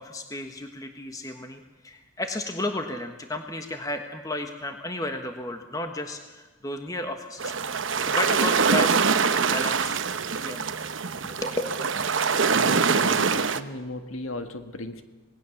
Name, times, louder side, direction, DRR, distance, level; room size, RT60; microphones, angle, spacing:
voice 1, 0.0-7.5 8.0-9.1 9.3-10.0 10.4-10.6 11.2-11.6, left 2 dB, 15° left, 5 dB, 1.3 m, -33 dB
sound 1, 7.4-13.6, right 5 dB, 70° right, 1.0 m, -24 dB
voice 2, 12.5-15.0, left 2 dB, 85° left, 8 dB, 1.7 m, -36 dB
27.0 x 19.5 x 7.2 m, 1.2 s
head